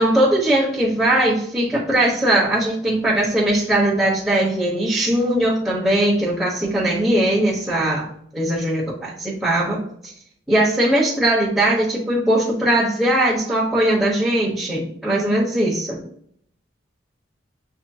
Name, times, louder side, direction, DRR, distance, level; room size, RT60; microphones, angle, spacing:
voice 1, 0.0-8.1 8.3-10.1 10.5-16.0, right 1 dB, ahead, -10 dB, 1.1 m, -20 dB
8.1 x 2.8 x 2.4 m, 0.66 s
head